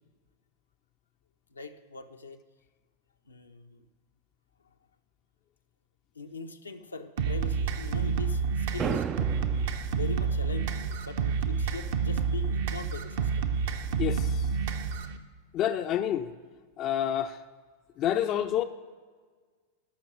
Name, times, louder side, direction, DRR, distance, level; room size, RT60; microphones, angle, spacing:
voice 1, 1.5-2.4 3.2-3.9 4.6-4.8 6.1-9.1 9.9-13.5 18.2-18.3, left 4 dB, 80° left, 5 dB, 0.7 m, -42 dB
sound 1, 7.2-15.2, right 5 dB, 55° right, 0.7 m, -29 dB
sound 2, 8.8-9.8, right 8 dB, 25° right, 0.3 m, -32 dB
voice 2, 14.0-14.5 15.5-16.3 16.8-17.4 18.0-18.6, left 10 dB, 35° left, 9 dB, 0.5 m, -28 dB
13.5 x 5.9 x 6.1 m, 1.5 s
figure-of-eight pair, 90°, 0 cm